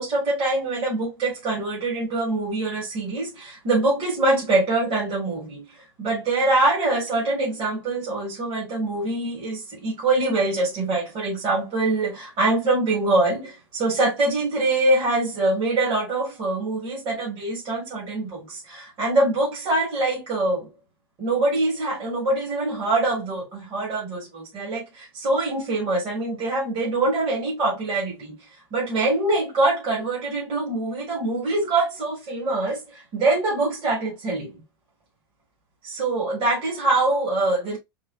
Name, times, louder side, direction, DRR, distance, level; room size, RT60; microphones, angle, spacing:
voice 1, 0.0-5.6 6.0-20.7 21.2-28.3 28.7-34.6 35.8-37.8, right 2 dB, 40° right, 2.6 m, -24 dB
4.3 x 3.0 x 2.7 m
hypercardioid pair, 100°, 13 cm